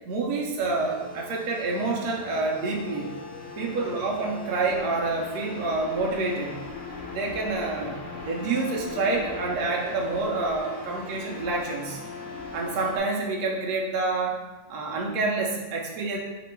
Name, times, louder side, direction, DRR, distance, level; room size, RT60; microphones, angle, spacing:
voice 1, 0.0-3.1 3.6-6.6 7.1-8.0 8.2-12.0 12.5-14.4 14.7-16.2, right 3 dB, 75° right, -1 dB, 1.2 m, -28 dB
sound 1, 0.6-13.0, left 4 dB, 60° left, 1.0 m, -39 dB
4.0 x 3.0 x 4.4 m, 1.2 s
omnidirectional pair, 1.7 m